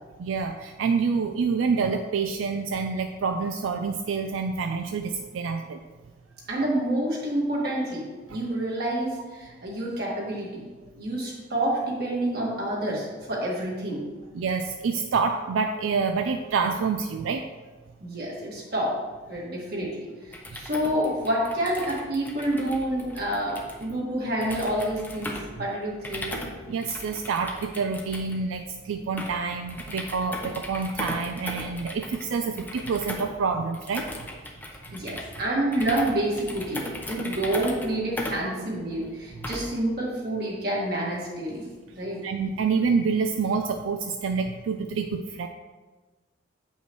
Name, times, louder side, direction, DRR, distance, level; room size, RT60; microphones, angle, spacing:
voice 1, 0.2-5.8 8.3-8.4 14.3-17.5 26.7-34.1 39.4-39.5 42.2-45.5, right 5 dB, 85° right, 5 dB, 0.4 m, -27 dB
voice 2, 6.5-8.1 8.3-10.6 11.0-14.0 18.0-18.9 19.3-25.3 25.6-26.3 34.9-42.2, right 1 dB, 50° right, -4 dB, 1.8 m, -28 dB
sound 1, 20.2-39.8, left 1 dB, 10° left, 0.7 m, -38 dB
8.1 x 5.4 x 3.1 m, 1.3 s
head